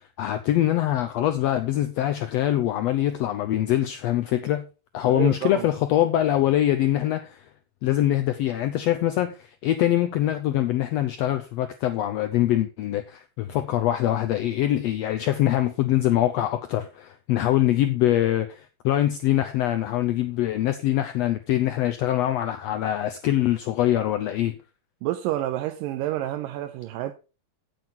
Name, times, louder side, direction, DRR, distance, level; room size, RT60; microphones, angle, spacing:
voice 1, 0.2-4.6 4.9-7.5 7.8-24.6, left 13 dB, 85° left, 1.4 m, -23 dB
voice 2, 5.1-5.7 25.0-27.1, right 13 dB, 90° right, 2.4 m, -29 dB
9.2 x 7.8 x 4.3 m
omnidirectional pair, 3.8 m